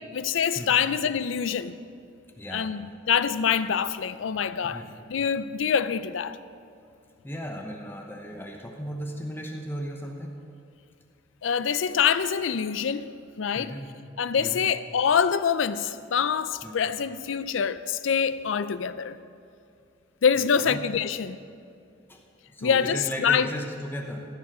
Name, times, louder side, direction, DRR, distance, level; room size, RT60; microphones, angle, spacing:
voice 1, 0.1-1.8 2.5-2.8 3.1-4.8 5.1-6.4 11.4-13.1 13.4-13.7 14.2-19.2 20.2-21.4 22.6-23.5, left 7 dB, 80° left, 0.5 m, -25 dB
voice 2, 2.4-2.7 4.6-4.9 7.2-10.4 13.5-13.9 14.4-14.7 16.6-16.8 20.4-20.9 22.1-22.2 22.5-24.2, equal, 10° left, 0.9 m, -36 dB
15.0 x 7.3 x 6.1 m
head